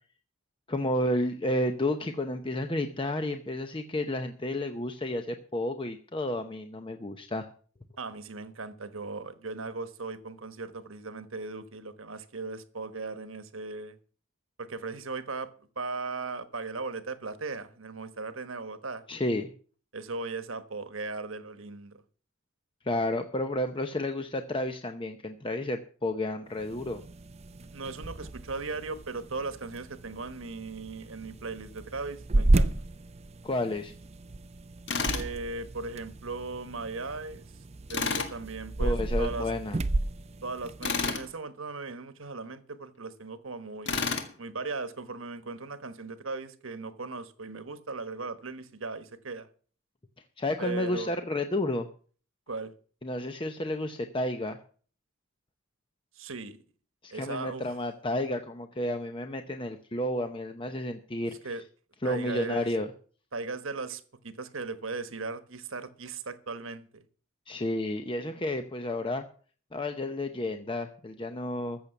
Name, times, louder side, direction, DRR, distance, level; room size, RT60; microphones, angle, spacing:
voice 1, 0.7-7.5 19.1-19.5 22.8-27.0 33.4-33.9 38.8-39.8 50.4-51.9 53.0-54.6 57.0-61.4 62.0-62.9 67.5-69.2 69.7-71.8, left 1 dB, 25° left, 0.7 m, -31 dB
voice 2, 8.0-14.0 14.6-15.5 15.8-19.0 19.9-22.0 27.7-32.9 35.1-37.5 37.9-39.5 40.4-44.0 44.4-49.5 50.6-51.1 52.5-52.7 56.1-56.6 57.1-57.8 61.4-61.6 62.0-62.7 63.3-67.0, right 3 dB, 70° right, 1.3 m, -38 dB
sound 1, 26.5-41.3, right 2 dB, 30° right, 0.5 m, -33 dB
Tools, 34.9-35.3 37.9-38.3 40.8-41.3 43.9-44.3, left 5 dB, 60° left, 1.8 m, -30 dB
14.5 x 6.8 x 6.9 m
head